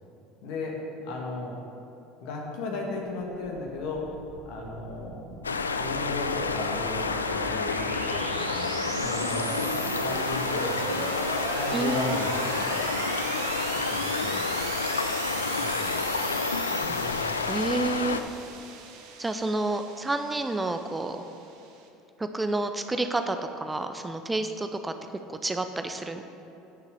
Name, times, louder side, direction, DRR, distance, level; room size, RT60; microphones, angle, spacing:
voice 1, 0.4-1.6 2.2-4.1 4.5-5.2 5.8-8.3 9.0-11.1 11.5-13.2 13.9-14.5 15.2-16.1 16.7-17.6, left 2 dB, 60° left, 0 dB, 1.9 m, -35 dB
sound 1, 3.2-21.8, right 5 dB, 60° right, 1.1 m, -37 dB
sound 2, 5.4-18.2, left 4 dB, 90° left, 0.4 m, -29 dB
voice 2, 11.7-12.2 17.5-18.2 19.2-21.2 22.2-24.9 25.3-26.2, right 2 dB, 15° right, 7 dB, 0.5 m, -29 dB
9.1 x 6.6 x 6.6 m, 2.8 s
hypercardioid pair, 70°, 0 cm